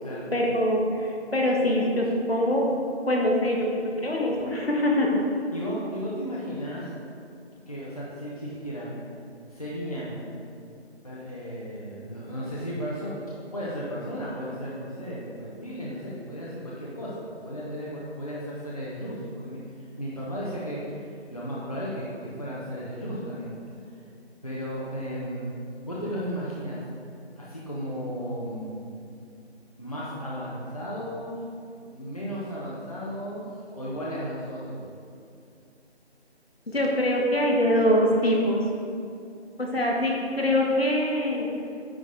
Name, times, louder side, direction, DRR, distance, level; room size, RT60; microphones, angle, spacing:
voice 1, 0.3-2.6 3.0-5.2 36.7-38.6 39.6-41.5, left 1 dB, 60° left, -1 dB, 1.3 m, -24 dB
voice 2, 5.5-6.9 7.7-8.9 9.5-10.2 11.0-17.2 17.4-23.5 23.8-23.9 24.4-26.8 27.4-28.8 29.8-31.3 31.9-33.4 33.7-34.8, equal, 35° left, -7 dB, 0.8 m, -34 dB
9.4 x 3.9 x 3.7 m, 2.4 s
figure-of-eight pair, 180°, 34 cm